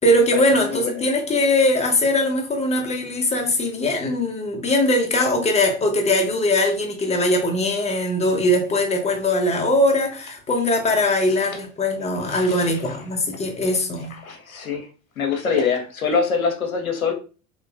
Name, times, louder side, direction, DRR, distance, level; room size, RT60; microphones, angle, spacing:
voice 1, 0.0-14.1, left 1 dB, 15° left, 0.7 m, -21 dB
voice 2, 12.3-12.7 14.2-14.9 15.2-17.1, left 5 dB, 90° left, 0.6 m, -24 dB
3.0 x 2.7 x 2.3 m
figure-of-eight pair, 75°, 40 cm